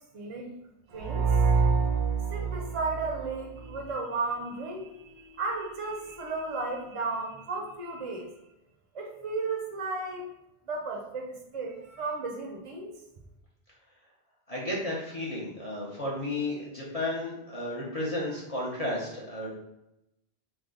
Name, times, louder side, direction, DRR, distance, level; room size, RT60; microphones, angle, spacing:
voice 1, 0.1-0.5 0.9-1.3 2.3-8.3 8.9-10.3 10.6-12.9, right 3 dB, 45° right, 1 dB, 0.5 m, -34 dB
sound 1, 1.0-3.8, right 5 dB, 85° right, 0.9 m, -26 dB
voice 2, 14.5-19.5, left 1 dB, 40° left, -6 dB, 0.8 m, -33 dB
3.3 x 2.1 x 3.7 m, 0.88 s
omnidirectional pair, 1.1 m